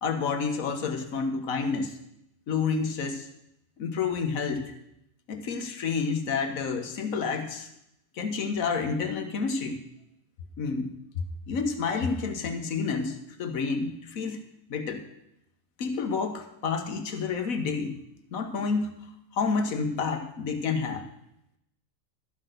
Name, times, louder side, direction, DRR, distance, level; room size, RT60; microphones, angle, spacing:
voice 1, 0.0-2.0 2.5-3.3 3.8-4.7 5.3-7.7 8.1-9.8 10.6-10.9 11.5-14.4 14.7-15.0 15.8-17.9 18.3-19.0 19.3-21.0, left 5 dB, 75° left, 7 dB, 1.5 m, -29 dB
13.0 x 5.9 x 6.6 m, 0.80 s
omnidirectional pair, 1.5 m